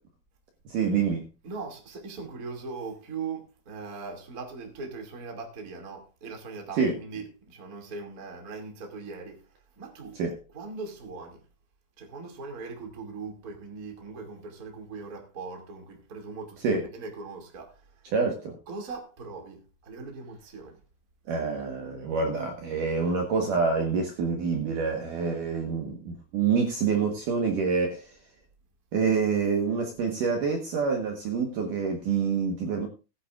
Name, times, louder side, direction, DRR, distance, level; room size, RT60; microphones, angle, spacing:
voice 1, 0.7-1.2 6.8-7.0 10.2-10.4 16.6-16.8 18.1-18.6 21.3-28.0 28.9-32.9, right 5 dB, 60° right, 2.6 m, -27 dB
voice 2, 1.4-9.4 9.8-10.2 10.5-11.4 12.0-17.7 18.7-20.8, right 4 dB, 25° right, 2.2 m, -40 dB
19.0 x 10.0 x 2.5 m
omnidirectional pair, 4.8 m